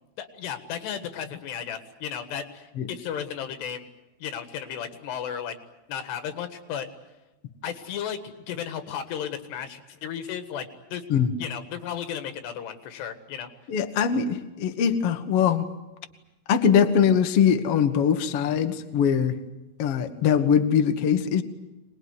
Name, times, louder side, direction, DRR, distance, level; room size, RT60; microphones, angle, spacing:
voice 1, 0.2-3.9 4.2-5.6 5.9-6.9 7.6-8.2 8.5-11.1 11.4-13.5, left 8 dB, 85° left, 8 dB, 3.9 m, -34 dB
voice 2, 13.7-15.7 16.5-19.4 19.8-21.4, left 7 dB, 60° left, 7 dB, 1.5 m, -22 dB
25.0 x 20.5 x 9.6 m, 1.0 s
omnidirectional pair, 4.7 m